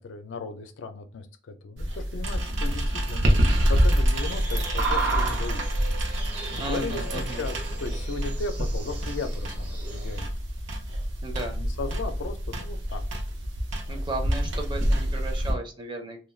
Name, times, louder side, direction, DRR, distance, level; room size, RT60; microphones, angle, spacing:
voice 1, 0.0-3.4 3.7-5.7 6.5-10.3 11.6-13.2, left 3 dB, 90° left, 7 dB, 0.4 m, -36 dB
sound 1, 1.8-15.5, equal, 90° right, 0.7 m, -27 dB
sound 2, 4.2-10.2, right 4 dB, 60° right, 0.7 m, -35 dB
voice 2, 6.5-7.5 11.2-11.6 13.9-16.2, right 2 dB, 25° right, 4 dB, 0.5 m, -35 dB
2.3 x 2.2 x 3.1 m, 0.38 s
head